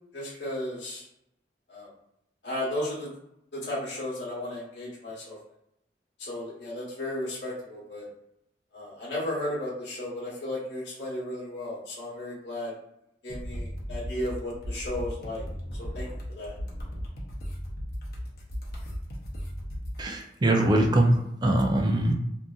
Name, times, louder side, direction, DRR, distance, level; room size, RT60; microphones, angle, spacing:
voice 1, 0.1-1.0 1.7-1.9 2.4-3.1 3.5-5.4 6.2-8.1 8.7-12.7 13.2-15.4 15.8-16.6, left 1 dB, 70° left, -7 dB, 1.1 m, -34 dB
sound 1, 13.3-20.0, equal, 55° left, 0.7 m, -36 dB
voice 2, 20.0-22.1, right 1 dB, 25° right, 2 dB, 0.4 m, -23 dB
2.8 x 2.5 x 2.3 m, 0.80 s
head